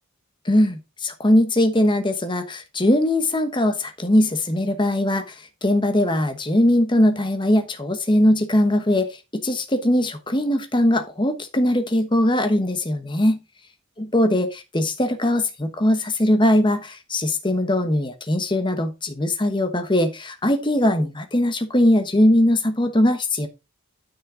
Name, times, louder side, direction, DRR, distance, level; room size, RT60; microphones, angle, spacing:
voice 1, 0.4-5.3 5.6-13.4 14.0-23.5, left 1 dB, 20° left, 1.1 m, -20 dB
9.5 x 5.5 x 3.8 m
head